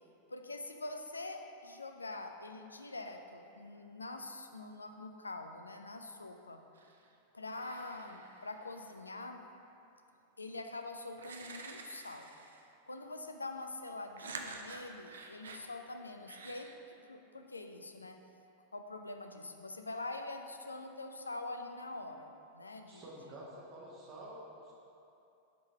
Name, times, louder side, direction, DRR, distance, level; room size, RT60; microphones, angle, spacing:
voice 1, 0.3-6.6 7.3-9.4 10.4-12.3 12.9-18.2 18.7-23.0, left 2 dB, 80° left, 6 dB, 0.4 m, -44 dB
sound 1, 6.8-7.1 7.6-9.0 10.5-10.6 11.2-12.7 14.2-15.7 16.3-16.8, right 4 dB, 65° right, 0.5 m, -49 dB
voice 2, 22.9-24.7, right 1 dB, 35° right, -5 dB, 1.0 m, -49 dB
7.3 x 4.0 x 4.6 m, 2.8 s
figure-of-eight pair, 90°, 0 cm